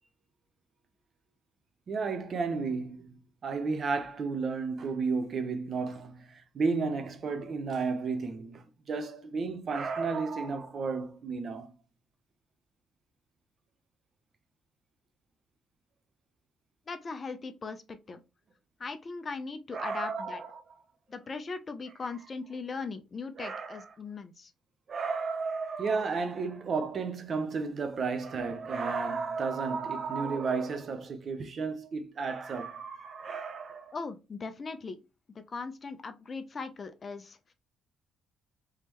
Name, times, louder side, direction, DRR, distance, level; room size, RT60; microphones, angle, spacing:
voice 1, 1.9-11.7 19.7-20.6 23.4-23.9 24.9-33.9, right 4 dB, 45° right, 0.6 m, -33 dB
voice 2, 16.9-18.2 18.8-20.4 21.1-24.5 33.9-35.0 35.3-37.4, left 4 dB, 30° left, 0.5 m, -39 dB
3.5 x 3.2 x 3.0 m
cardioid pair, 120°, 0 cm